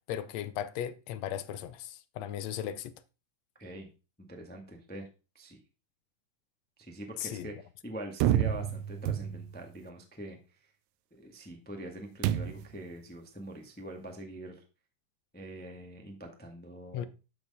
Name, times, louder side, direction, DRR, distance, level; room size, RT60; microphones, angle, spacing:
voice 1, 0.1-2.9 7.2-7.5 16.9-17.1, left 10 dB, 75° left, 1.6 m, -36 dB
voice 2, 4.3-5.1 5.3-5.6 6.8-7.5 7.8-10.4 11.2-14.6 15.3-17.0, right 1 dB, 5° left, 0.7 m, -44 dB
sound 1, 8.2-9.7 12.2-12.8, right 11 dB, 80° right, 1.7 m, -29 dB
12.5 x 4.5 x 5.5 m
omnidirectional pair, 3.7 m